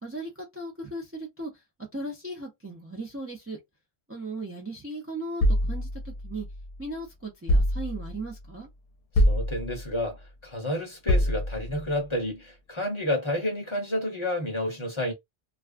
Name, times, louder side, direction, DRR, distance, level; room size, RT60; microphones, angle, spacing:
voice 1, 0.0-1.6 1.9-3.6 4.1-6.5 6.8-8.7, right 2 dB, 15° right, 0.5 m, -37 dB
sound 1, 5.4-6.8 7.5-8.3 9.1-10.0 11.1-11.9, equal, 80° left, 0.8 m, -25 dB
voice 2, 9.1-15.1, left 1 dB, 30° left, 0.9 m, -30 dB
2.4 x 2.3 x 2.4 m
omnidirectional pair, 1.1 m